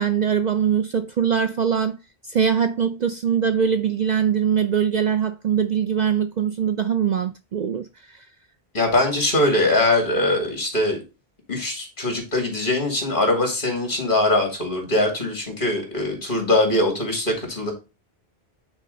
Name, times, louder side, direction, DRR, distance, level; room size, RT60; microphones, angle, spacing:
voice 1, 0.0-2.0 2.3-7.9 8.1-8.2, right 8 dB, 55° right, 0.5 m, -22 dB
voice 2, 8.7-11.0 11.5-17.7, left 1 dB, 55° left, 2.7 m, -22 dB
8.9 x 4.2 x 3.9 m
omnidirectional pair, 1.1 m